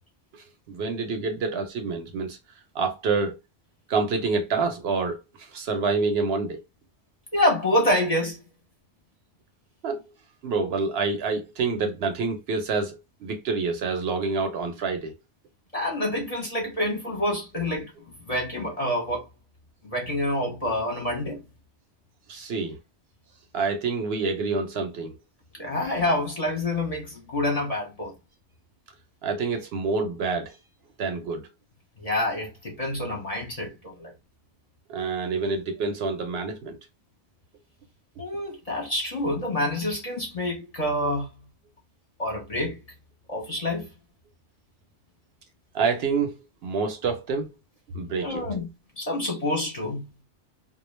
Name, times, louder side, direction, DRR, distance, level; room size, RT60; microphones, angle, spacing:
voice 1, 0.7-2.4 2.7-3.4 3.9-6.6 9.8-10.0 10.4-15.1 22.3-22.8 23.5-25.1 29.2-30.6 31.0-31.4 34.9-36.8 45.7-46.3 46.6-47.5 47.9-48.5, right 4 dB, 70° right, 0.8 m, -27 dB
voice 2, 7.3-8.4 15.7-17.9 18.3-19.2 19.8-21.4 25.6-28.1 32.0-34.1 38.2-41.3 42.2-42.8 43.3-43.9 48.2-48.7 49.0-50.0, left 1 dB, 40° left, 0.8 m, -27 dB
2.2 x 2.2 x 3.1 m
omnidirectional pair, 1.2 m